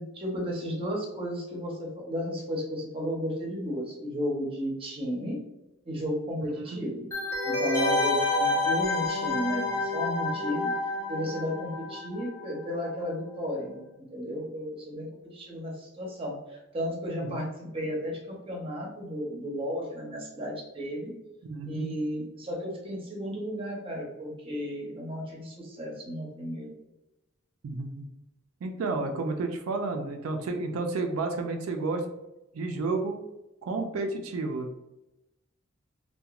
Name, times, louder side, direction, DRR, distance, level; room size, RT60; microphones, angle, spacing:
voice 1, 0.0-5.4 5.8-7.1 7.4-10.7 11.1-21.1 21.7-26.8, equal, 25° right, -1 dB, 0.6 m, -34 dB
sound 1, 7.1-12.6 12.8-12.9, left 2 dB, 15° left, 0.5 m, -28 dB
voice 2, 21.4-21.9 27.6-28.1 28.6-32.0 32.5-33.2 33.6-34.8, right 3 dB, 90° right, 4 dB, 0.4 m, -31 dB
2.9 x 2.2 x 2.3 m, 0.93 s
head